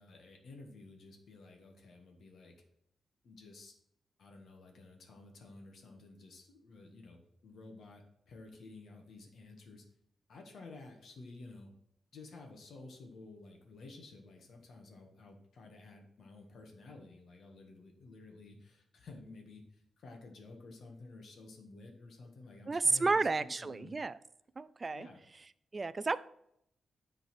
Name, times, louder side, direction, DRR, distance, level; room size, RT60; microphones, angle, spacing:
voice 1, 0.0-2.6 3.2-3.7 4.2-9.8 10.3-11.7 12.1-24.0 24.9-25.2, left 3 dB, 60° left, 2 dB, 1.5 m, -53 dB
voice 2, 22.7-24.2 24.6-25.1 25.7-26.2, right 3 dB, 25° right, 16 dB, 0.3 m, -31 dB
10.0 x 4.0 x 6.0 m, 0.73 s
wide cardioid pair, 170°, 0 cm